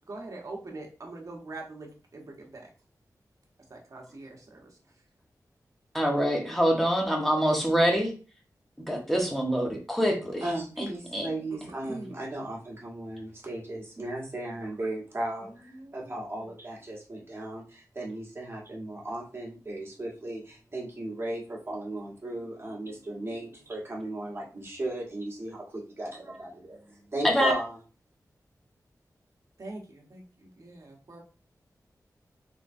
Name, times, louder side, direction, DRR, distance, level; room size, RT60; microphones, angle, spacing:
voice 1, 0.1-2.7 3.7-4.7 11.8-12.1 15.4-16.1 29.6-31.2, right 2 dB, 55° right, 0 dB, 1.1 m, -43 dB
voice 2, 5.9-8.1 8.9-10.4 11.1-11.3 27.2-27.5, equal, 5° left, 1 dB, 1.0 m, -25 dB
voice 3, 10.4-27.8, right 1 dB, 35° right, -2 dB, 1.4 m, -36 dB
3.7 x 3.2 x 2.6 m, 0.35 s
wide cardioid pair, 85°, 7 cm